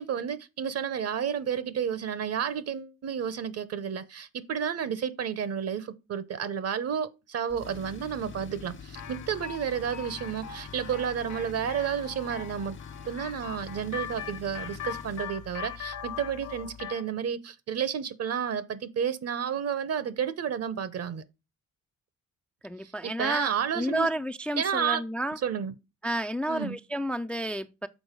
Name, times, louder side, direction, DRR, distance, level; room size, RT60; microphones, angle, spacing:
voice 1, 0.0-12.8 13.1-21.2 22.8-24.1 24.6-25.0 25.4-25.7 26.5-26.8, right 8 dB, 55° right, 0.9 m, -31 dB
Tools, 7.5-17.0, left 6 dB, 40° left, 0.8 m, -45 dB
sound 1, 8.9-17.1, left 9 dB, 70° left, 1.1 m, -41 dB
voice 2, 22.6-25.4 26.0-27.9, right 1 dB, 5° left, 0.3 m, -31 dB
6.3 x 4.4 x 5.1 m
cardioid pair, 90°, 30 cm